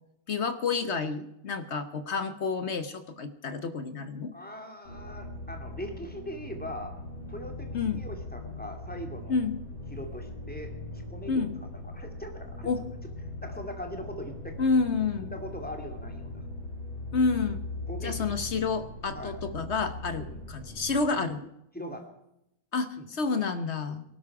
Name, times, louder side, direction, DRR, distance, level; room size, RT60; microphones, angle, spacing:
voice 1, 0.3-4.3 7.7-8.0 9.3-9.6 11.3-11.5 12.6-12.8 14.6-15.3 17.1-17.6 18.0-20.2 20.5-21.4 22.7-24.0, left 4 dB, 50° left, 11 dB, 0.9 m, -29 dB
voice 2, 4.3-7.0 7.3-9.4 9.9-11.4 11.9-12.7 13.4-14.6 15.3-16.5 17.9-18.4 19.1-19.4 20.1-20.4 21.7-22.1 23.0-23.1 23.9-24.0, equal, 5° left, 4 dB, 2.3 m, -41 dB
sound 1, 4.8-21.0, left 2 dB, 80° left, 5.1 m, -40 dB
19.0 x 12.0 x 4.8 m, 0.83 s
omnidirectional pair, 2.2 m